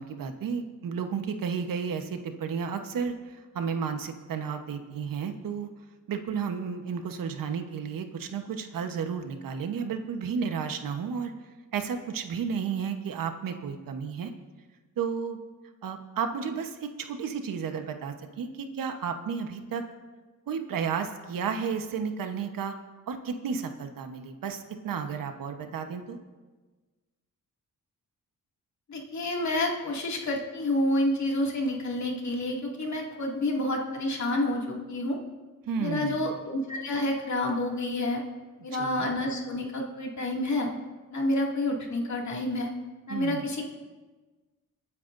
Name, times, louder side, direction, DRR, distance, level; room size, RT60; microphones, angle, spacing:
voice 1, 0.0-5.7 6.1-11.3 11.7-14.3 15.0-15.4 15.8-19.8 20.5-22.7 23.1-26.2 35.6-36.3 38.7-39.1 43.1-43.5, right 6 dB, 85° right, 6 dB, 1.1 m, -32 dB
voice 2, 28.9-35.2 35.8-38.2 38.6-40.7 41.1-42.7 43.1-43.7, left 1 dB, 60° left, -1 dB, 2.3 m, -29 dB
28.0 x 9.4 x 2.6 m, 1.3 s
cardioid pair, 100°, 33 cm